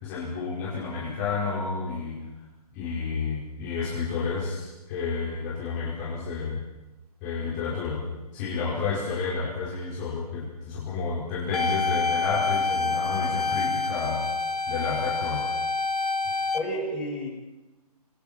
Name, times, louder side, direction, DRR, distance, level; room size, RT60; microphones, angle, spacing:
voice 1, 0.0-2.2 2.7-6.6 7.2-8.0 8.3-14.2 14.7-15.5, left 4 dB, 25° left, -6 dB, 5.2 m, -30 dB
sound 1, 11.5-16.6, left 4 dB, 75° left, 1.9 m, -27 dB
voice 2, 12.7-13.0 16.5-17.3, equal, 5° left, -5 dB, 7.8 m, -32 dB
29.5 x 25.5 x 4.6 m, 1.1 s
figure-of-eight pair, 140°, 20 cm